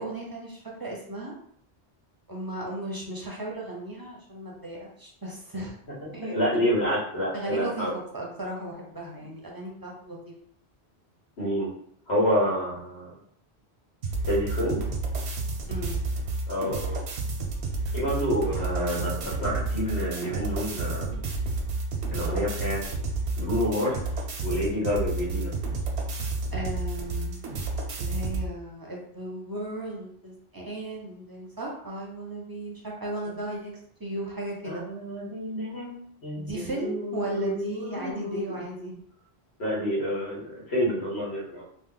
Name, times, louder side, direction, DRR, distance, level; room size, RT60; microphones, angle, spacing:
voice 1, 0.0-1.3 2.3-5.7 6.1-6.7 7.3-7.9 8.1-10.3 15.7-16.0 18.5-19.2 26.5-27.4 28.0-33.7 34.0-34.8 36.4-38.9, right 1 dB, 25° right, -3 dB, 0.5 m, -36 dB
voice 2, 6.0-7.9 11.4-11.7 12.1-13.1 14.2-14.8 16.5-17.0 17.9-21.2 22.1-22.8 23.4-24.0 24.4-25.5 34.6-35.9 36.2-38.9 39.6-41.6, equal, 80° left, -5 dB, 1.5 m, -28 dB
sound 1, 14.0-28.5, right 3 dB, 90° right, 0.9 m, -31 dB
2.9 x 2.1 x 3.7 m, 0.66 s
omnidirectional pair, 1.1 m